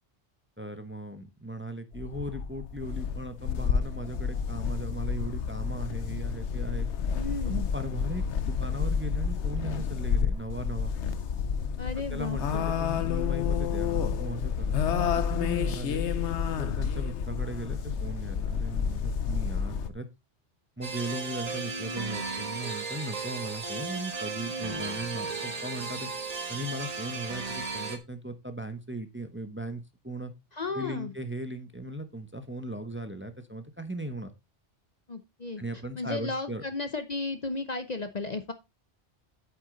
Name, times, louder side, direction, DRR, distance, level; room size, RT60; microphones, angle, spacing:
voice 1, 0.6-6.9 7.5-11.0 12.0-16.0 16.6-20.1 20.8-26.1 26.5-30.3 30.7-34.3 35.6-36.6, right 1 dB, 10° right, 9 dB, 0.9 m, -38 dB
sound 1, 1.9-19.9, left 7 dB, 90° left, 1.1 m, -30 dB
voice 2, 7.2-7.7 11.8-12.7 30.5-31.1 35.1-35.6 36.0-38.5, left 3 dB, 40° left, 9 dB, 0.8 m, -34 dB
sound 2, 20.8-28.0, right 4 dB, 35° right, 1.2 m, -35 dB
8.1 x 8.0 x 3.9 m, 0.24 s
omnidirectional pair, 1.1 m